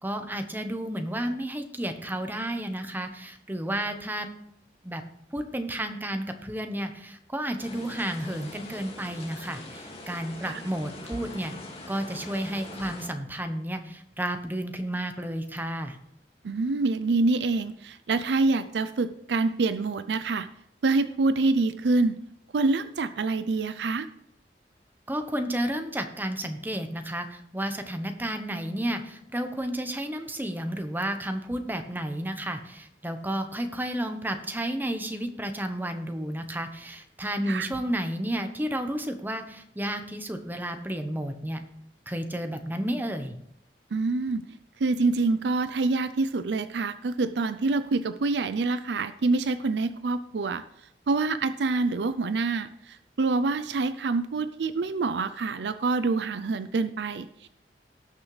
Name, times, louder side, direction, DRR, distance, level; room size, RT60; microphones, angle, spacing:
voice 1, 0.0-4.3 4.8-5.0 5.3-11.5 11.9-16.0 25.1-41.6 42.1-43.3, right 1 dB, 10° right, 7 dB, 1.0 m, -32 dB
sound 1, 7.6-13.1, left 2 dB, 35° left, 2.1 m, -43 dB
voice 2, 16.4-20.5 20.8-22.2 22.5-24.1 37.5-37.7 43.9-44.4 44.8-50.6 51.1-57.5, right 3 dB, 70° right, 12 dB, 0.5 m, -26 dB
18.5 x 6.3 x 3.3 m, 0.75 s
head